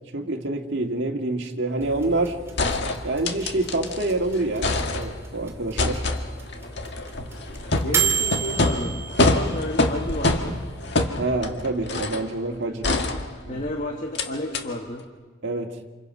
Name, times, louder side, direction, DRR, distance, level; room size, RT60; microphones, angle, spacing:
voice 1, 0.1-2.4 3.0-6.0 7.8-8.0 11.2-12.9 13.4-13.7 15.4-15.7, right 2 dB, 60° right, 2 dB, 1.9 m, -27 dB
sound 1, 1.8-10.9, right 6 dB, 15° right, 2.7 m, -33 dB
sound 2, 2.1-2.2 2.6-4.1 4.4-5.4 5.8-12.3 12.8-13.7 14.2-14.3 14.5-14.6, left 2 dB, 60° left, 1.7 m, -25 dB
voice 2, 7.8-10.6 12.6-15.1, left 1 dB, 40° left, 2 dB, 1.7 m, -33 dB
28.5 x 28.0 x 5.5 m, 1.3 s
head